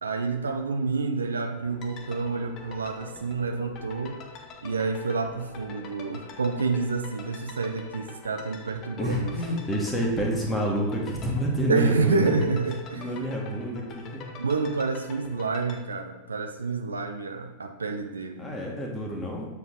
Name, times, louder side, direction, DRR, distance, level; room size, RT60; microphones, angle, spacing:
voice 1, 0.0-4.2 4.6-9.6 11.7-13.1 14.4-18.5, right 4 dB, 75° right, 6 dB, 0.5 m, -28 dB
sound 1, 1.6-15.8, left 4 dB, 35° left, 0.8 m, -45 dB
voice 2, 9.0-12.3 12.9-14.2 18.4-19.5, equal, 15° left, -1 dB, 1.5 m, -28 dB
7.1 x 4.5 x 3.7 m, 1.1 s
figure-of-eight pair, 90°, 0 cm